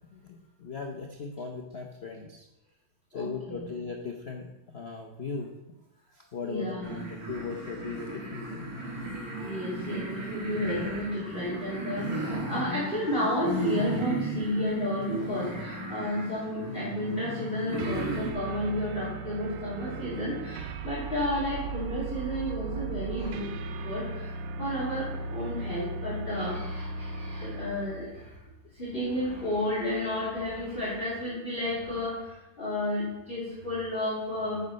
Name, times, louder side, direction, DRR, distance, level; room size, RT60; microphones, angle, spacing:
voice 1, 0.1-2.5 3.1-5.5 6.1-8.7, left 5 dB, 70° left, 2 dB, 0.5 m, -38 dB
voice 2, 3.1-3.7 6.4-7.1 9.4-23.5 23.8-24.0 24.6-28.1 28.8-32.2 32.6-34.6, left 1 dB, 25° left, -6 dB, 2.7 m, -32 dB
sound 1, 6.8-18.3, right 1 dB, 45° right, 2.3 m, -35 dB
sound 2, 17.8-28.1, right 4 dB, 70° right, 1.2 m, -37 dB
8.3 x 6.7 x 5.2 m, 0.95 s
omnidirectional pair, 2.3 m